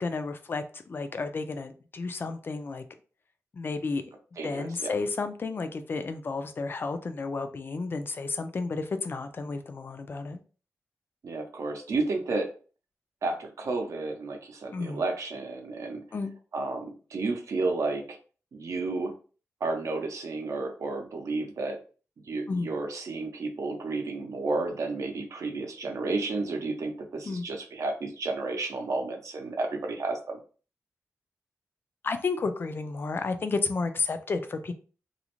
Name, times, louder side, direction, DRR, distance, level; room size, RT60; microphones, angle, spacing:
voice 1, 0.0-2.8 3.5-4.0 4.4-10.4 14.7-15.0 16.1-16.3 22.5-22.7 27.3-27.4 32.0-34.7, left 4 dB, 40° left, 0.3 m, -32 dB
voice 2, 4.4-4.9 11.2-12.5 13.2-16.0 16.5-18.2 18.5-19.1 19.6-21.8 22.3-30.4, right 3 dB, 75° right, 0.6 m, -32 dB
2.5 x 2.0 x 2.9 m
wide cardioid pair, 110°, 5 cm